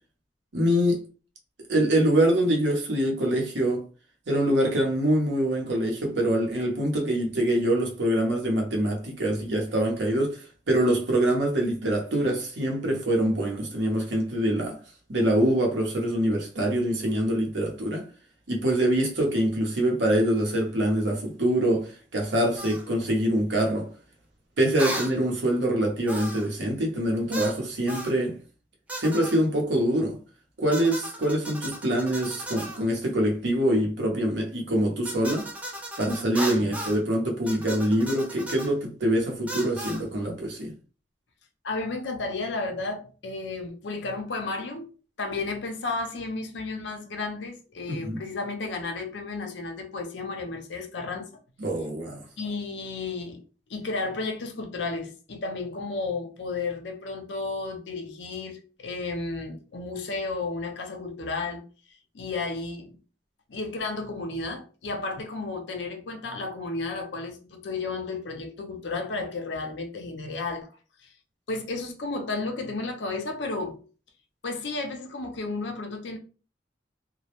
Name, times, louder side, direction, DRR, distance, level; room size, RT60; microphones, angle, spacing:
voice 1, 0.5-1.0 1.7-3.9 4.3-14.8 15.1-18.1 18.5-23.9 24.6-28.4 29.0-30.2 30.6-35.5 36.0-40.7 47.9-48.2 51.6-52.2, right 1 dB, 80° right, 0.8 m, -24 dB
sound 1, 22.6-22.8 24.8-25.1 26.1-26.5 27.3-27.6 27.9-28.2 28.9-29.4 30.7-32.8 35.0-37.0 37.5-38.7 39.5-40.0, right 1 dB, 10° right, 0.4 m, -36 dB
voice 2, 41.6-44.9 45.2-51.4 52.4-53.4 53.7-61.6 62.1-62.9 63.5-70.7 71.0-71.1 71.5-73.8 74.4-76.2, left 3 dB, 80° left, 0.5 m, -33 dB
2.2 x 2.0 x 2.9 m
head